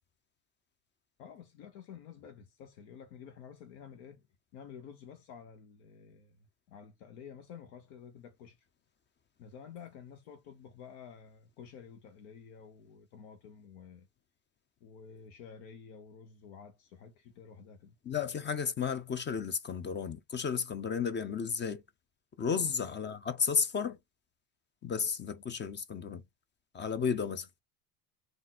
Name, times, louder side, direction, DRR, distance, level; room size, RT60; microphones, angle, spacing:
voice 1, 1.2-4.2 4.5-8.7 9.4-14.1 14.8-17.9 22.5-22.7, left 7 dB, 70° left, 1.1 m, -51 dB
voice 2, 18.0-21.8 22.4-24.0 24.8-26.2 26.7-27.5, left 6 dB, 25° left, 0.5 m, -33 dB
3.7 x 2.6 x 4.2 m
supercardioid pair, 105°, 48 cm